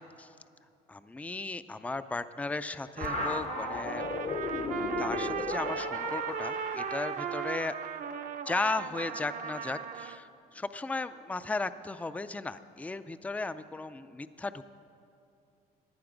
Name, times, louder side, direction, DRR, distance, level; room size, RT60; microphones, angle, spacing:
voice 1, 0.9-4.1 5.0-7.8 8.5-14.7, left 3 dB, 10° left, 13 dB, 0.4 m, -35 dB
sound 1, 3.0-8.1, left 5 dB, 40° left, 0.8 m, -37 dB
Trumpet, 3.0-10.2, right 8 dB, 50° right, 0.6 m, -36 dB
15.5 x 10.5 x 5.1 m, 2.6 s
cardioid pair, 110°, 17 cm